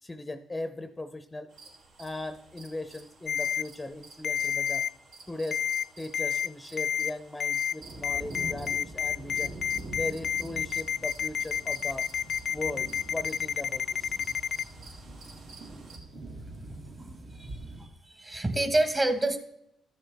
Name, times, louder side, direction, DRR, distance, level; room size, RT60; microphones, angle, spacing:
voice 1, 0.0-1.5 2.0-4.9 5.3-5.6 6.0-9.5 9.9-12.1 12.5-14.2, left 2 dB, 15° left, 10 dB, 0.6 m, -38 dB
sound 1, 1.5-16.0, right 3 dB, 80° right, 2.8 m, -53 dB
Ringtone, 3.3-3.6 4.2-4.9 5.5-5.8 6.1-6.5 6.8-7.1 7.4-7.7 8.0-14.6, left 8 dB, 60° left, 0.4 m, -29 dB
sound 2, 7.8-17.9, right 2 dB, 55° right, 1.4 m, -44 dB
voice 2, 16.7-17.9 18.1-19.4, right 1 dB, 25° right, 8 dB, 1.4 m, -29 dB
14.0 x 7.3 x 3.4 m, 0.78 s
cardioid pair, 90°, 0 cm